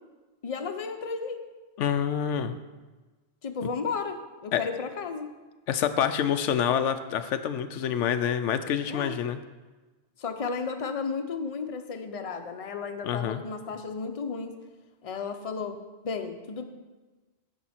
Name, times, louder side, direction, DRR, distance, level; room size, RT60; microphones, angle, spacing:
voice 1, 0.4-1.4 3.4-5.3 8.9-9.2 10.2-14.5 15.0-16.6, left 5 dB, 35° left, 6 dB, 0.7 m, -33 dB
voice 2, 1.8-2.6 4.5-4.7 5.7-9.4 13.0-13.4, left 8 dB, 90° left, 9 dB, 0.9 m, -27 dB
10.5 x 7.5 x 4.3 m, 1.2 s
omnidirectional pair, 1.2 m